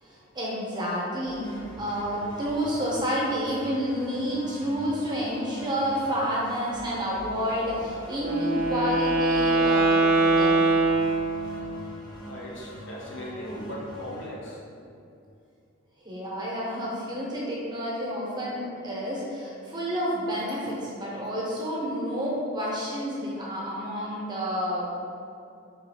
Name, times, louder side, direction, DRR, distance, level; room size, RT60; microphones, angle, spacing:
voice 1, 0.0-10.6 16.0-25.1, equal, 20° right, -5 dB, 0.8 m, -30 dB
sound 1, 1.3-14.3, equal, 20° left, 0.7 m, -43 dB
Wind instrument woodwind instrument, 8.1-11.8, right 3 dB, 50° right, 0.7 m, -23 dB
voice 2, 12.2-14.6, equal, 65° left, -4 dB, 0.9 m, -38 dB
3.9 x 2.6 x 4.2 m, 2.5 s
head